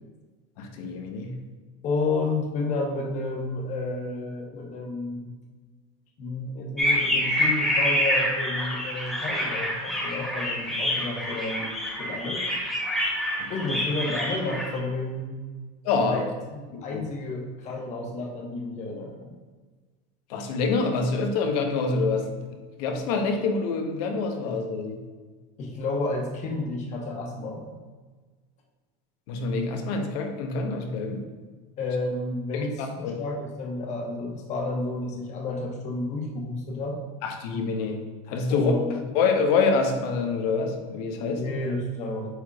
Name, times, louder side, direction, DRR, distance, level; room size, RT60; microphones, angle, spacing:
voice 1, 0.6-1.4 13.6-13.7 15.8-16.2 16.7-17.0 20.3-22.3 22.8-25.0 29.3-31.2 32.5-33.2 37.2-38.0 38.3-38.7 39.1-41.4, left 4 dB, 75° left, 3 dB, 1.1 m, -26 dB
voice 2, 1.8-5.3 6.2-11.7 11.9-12.4 13.5-15.4 16.1-16.3 16.5-19.3 25.6-27.7 31.8-37.0 38.5-39.0 41.2-42.3, left 2 dB, 35° left, 1 dB, 1.1 m, -31 dB
sound 1, 6.8-14.8, left 1 dB, ahead, 1.5 m, -27 dB
8.0 x 5.0 x 2.4 m, 1.4 s
cardioid pair, 160°, 20 cm